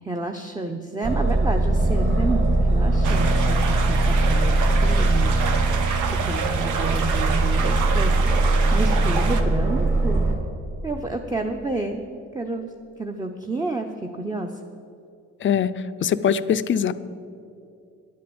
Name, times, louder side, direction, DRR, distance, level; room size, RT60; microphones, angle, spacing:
voice 1, 0.0-5.4 5.9-10.3 10.8-14.6, right 2 dB, 10° right, 3 dB, 0.7 m, -30 dB
Aircraft, 1.0-10.4, right 2 dB, 40° right, 2.3 m, -21 dB
sound 1, 3.0-9.4, right 6 dB, 80° right, 1.1 m, -29 dB
voice 2, 15.4-15.7 16.0-16.9, left 8 dB, 40° left, 13 dB, 0.5 m, -21 dB
9.9 x 8.5 x 7.8 m, 2.5 s
cardioid pair, 90°, 30 cm